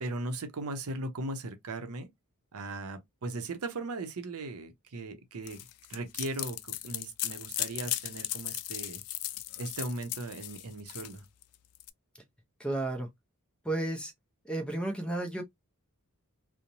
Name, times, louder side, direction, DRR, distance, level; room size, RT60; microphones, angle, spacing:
voice 1, 0.0-2.1 2.5-9.0 9.6-11.2, right 2 dB, 70° right, 0.6 m, -38 dB
sound 1, 5.5-11.9, left 15 dB, 75° left, 0.3 m, -37 dB
voice 2, 12.6-13.1 13.6-14.1 14.4-15.4, right 2 dB, 5° left, 0.5 m, -32 dB
2.9 x 2.1 x 2.5 m
head